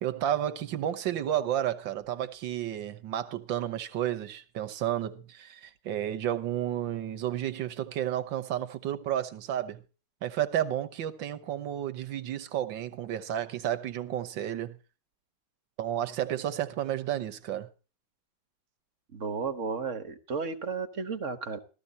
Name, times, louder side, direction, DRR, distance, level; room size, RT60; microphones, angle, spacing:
voice 1, 0.0-9.8 10.2-14.8 15.8-17.7, right 11 dB, 85° right, 1.7 m, -32 dB
voice 2, 19.1-21.6, right 5 dB, 45° right, 1.5 m, -33 dB
14.5 x 14.0 x 4.1 m
omnidirectional pair, 2.0 m